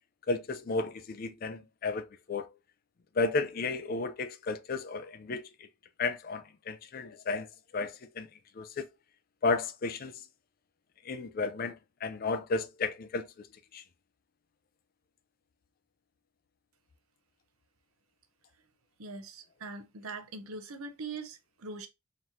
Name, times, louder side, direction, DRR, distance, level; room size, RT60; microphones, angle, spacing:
voice 1, 0.3-2.5 3.2-5.4 6.0-7.5 7.7-8.3 8.6-8.8 9.4-10.1 11.1-11.7 12.0-13.3 13.7-13.8, left 3 dB, 45° left, 0.4 m, -33 dB
voice 2, 19.0-21.9, right 3 dB, 90° right, 0.7 m, -42 dB
3.9 x 3.0 x 2.6 m
head